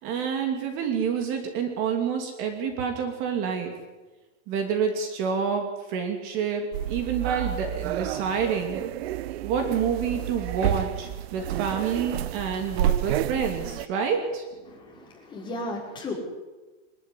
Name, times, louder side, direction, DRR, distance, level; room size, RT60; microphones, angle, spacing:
voice 1, 0.0-3.7 4.5-8.8 9.4-14.4, right 6 dB, 35° right, 4 dB, 2.8 m, -28 dB
sound 1, 6.7-13.9, right 13 dB, 60° right, 0.8 m, -30 dB
voice 2, 14.7-16.1, left 2 dB, 15° left, -2 dB, 5.4 m, -35 dB
24.5 x 12.5 x 10.0 m, 1.2 s
supercardioid pair, 165°, 36 cm